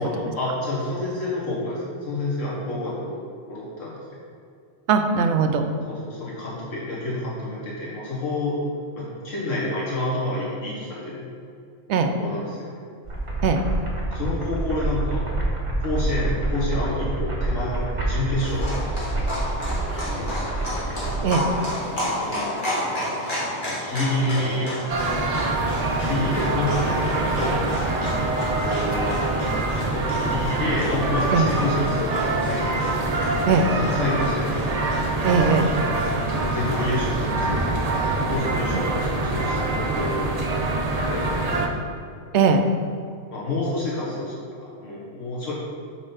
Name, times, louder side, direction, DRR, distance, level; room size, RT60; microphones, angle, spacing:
voice 1, 0.0-3.2 3.5-4.0 5.9-8.6 9.0-11.3 12.1-12.8 14.1-15.2 15.8-18.9 20.1-20.6 22.2-22.6 23.7-24.7 26.0-27.6 28.6-29.2 29.8-32.8 33.8-34.6 36.3-38.0 38.2-40.4 41.1-41.6 43.3-45.5, left 1 dB, 75° left, -7 dB, 1.7 m, -28 dB
voice 2, 4.9-5.7 11.9-12.2 13.4-13.6 21.2-21.5 31.3-31.5 33.5-33.7 35.2-35.7 42.3-42.6, right 5 dB, 70° right, 6 dB, 0.8 m, -19 dB
sound 1, 13.0-21.3, right 2 dB, 25° right, 1.1 m, -27 dB
Livestock farm animals working animals, 18.4-38.4, equal, 40° left, 1.8 m, -32 dB
sound 2, 24.9-41.7, right 2 dB, 45° right, 0.5 m, -25 dB
5.3 x 4.6 x 5.6 m, 2.4 s
omnidirectional pair, 1.3 m